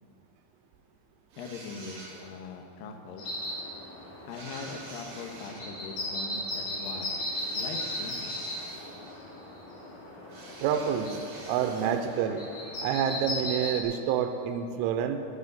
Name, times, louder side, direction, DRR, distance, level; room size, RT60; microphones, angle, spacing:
sound 1, 1.3-2.5 4.3-5.7 7.3-9.3 10.3-12.3, right 2 dB, 50° right, 3.8 m, -47 dB
voice 1, 1.4-3.3 4.3-7.1 7.5-8.4, left 4 dB, 75° left, 3 dB, 2.2 m, -41 dB
sound 2, 3.2-13.8, left 1 dB, 50° left, 3.9 m, -37 dB
voice 2, 10.6-12.5 12.8-15.2, right 8 dB, 90° right, 7 dB, 3.2 m, -28 dB
14.0 x 6.8 x 9.8 m, 2.7 s
omnidirectional pair, 5.5 m